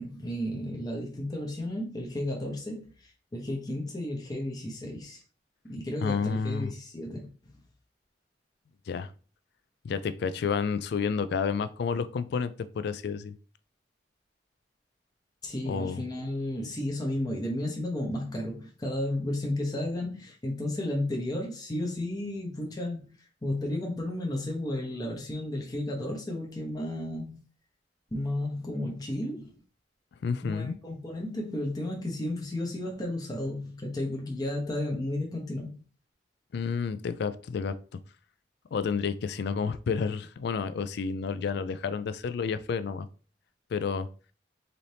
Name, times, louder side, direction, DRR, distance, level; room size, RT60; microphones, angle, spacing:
voice 1, 0.0-5.2 5.6-7.3 15.4-27.4 28.1-29.5 30.4-35.8, left 1 dB, 20° left, 0.8 m, -33 dB
voice 2, 6.0-6.7 8.9-9.1 9.8-13.3 15.6-16.0 30.2-30.8 36.5-37.7 38.7-43.1 43.7-44.1, left 5 dB, 60° left, 0.3 m, -30 dB
4.1 x 2.7 x 3.3 m
head